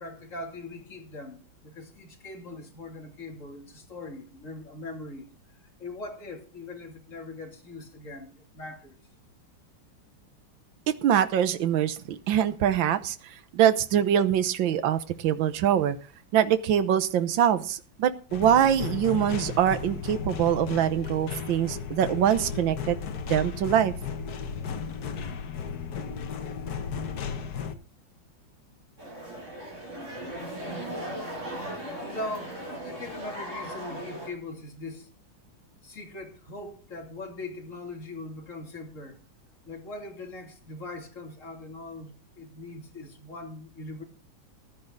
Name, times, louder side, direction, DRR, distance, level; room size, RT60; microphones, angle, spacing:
voice 1, 0.0-5.3 5.8-9.0 32.0-35.1 35.8-39.2 39.7-44.0, left 2 dB, 40° left, 3.2 m, -41 dB
voice 2, 11.0-16.0 16.3-23.0 23.3-23.9, right 10 dB, 80° right, 1.7 m, -24 dB
sound 1, 18.3-27.7, left 6 dB, 55° left, 1.6 m, -35 dB
sound 2, 29.0-34.3, right 1 dB, 35° right, 7.1 m, -37 dB
15.0 x 11.5 x 3.9 m
omnidirectional pair, 2.1 m